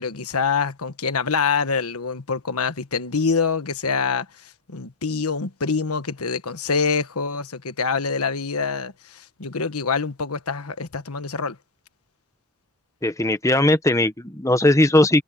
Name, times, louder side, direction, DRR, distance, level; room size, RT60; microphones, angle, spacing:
voice 1, 0.0-11.6, left 5 dB, 85° left, 1.4 m, -25 dB
voice 2, 13.0-15.2, left 1 dB, 15° left, 1.1 m, -18 dB
head